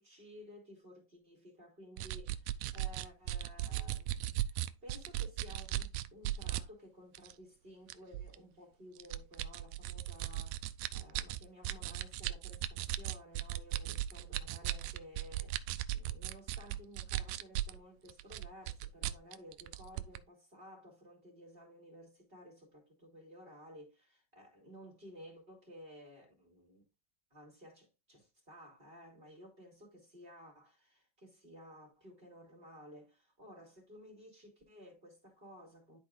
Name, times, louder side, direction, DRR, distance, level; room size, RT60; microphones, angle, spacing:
voice 1, 0.0-2.3 2.7-10.6 10.9-26.8 27.3-36.0, equal, 20° right, 3.0 m, -55 dB
sound 1, 2.0-6.6 7.1-7.3 7.9-8.4 9.0-17.8 18.1-20.2, right 14 dB, 80° right, 1.6 m, -37 dB
12.0 x 4.4 x 2.5 m
omnidirectional pair, 3.5 m